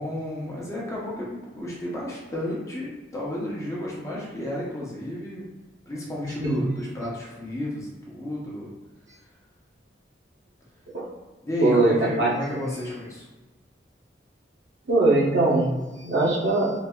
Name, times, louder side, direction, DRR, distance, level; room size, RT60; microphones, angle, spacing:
voice 1, 0.0-5.5 5.9-8.7 11.4-13.3, left 1 dB, 15° left, -5 dB, 0.7 m, -32 dB
voice 2, 11.6-12.6 14.9-15.7 16.0-16.7, right 2 dB, 75° right, -5 dB, 1.0 m, -21 dB
4.0 x 2.6 x 2.3 m, 1.2 s
head